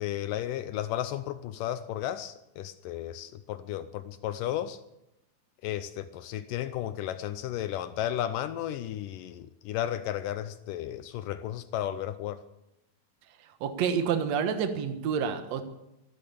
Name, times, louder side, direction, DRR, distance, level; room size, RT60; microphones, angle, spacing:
voice 1, 0.0-4.8 5.6-12.4, left 12 dB, 80° left, 12 dB, 2.0 m, -34 dB
voice 2, 13.6-15.6, right 7 dB, 60° right, 8 dB, 2.1 m, -28 dB
14.5 x 12.5 x 7.0 m, 0.88 s
omnidirectional pair, 4.3 m